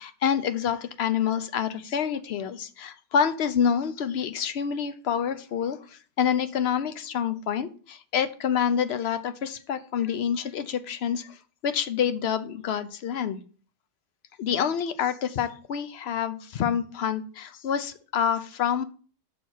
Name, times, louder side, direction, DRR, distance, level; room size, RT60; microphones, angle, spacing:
voice 1, 0.0-13.4 14.4-18.8, left 8 dB, 65° left, 12 dB, 0.8 m, -27 dB
6.2 x 4.6 x 5.4 m, 0.40 s
omnidirectional pair, 1.2 m